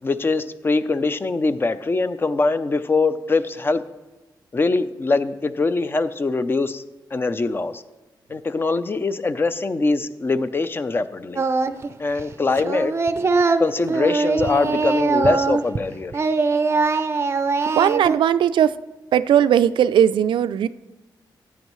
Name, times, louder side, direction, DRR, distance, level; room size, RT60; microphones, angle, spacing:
voice 1, 0.0-3.8 4.5-6.8 7.1-7.8 8.3-11.4 12.0-12.9 13.6-16.2, left 3 dB, 30° left, 12 dB, 0.5 m, -22 dB
Singing, 11.4-11.9 12.2-15.8 16.1-18.2, right 4 dB, 35° right, 0.5 m, -22 dB
voice 2, 17.7-18.8 19.1-20.7, right 9 dB, 90° right, 13 dB, 0.4 m, -18 dB
14.5 x 9.6 x 3.1 m, 1.1 s
wide cardioid pair, 130°, 8 cm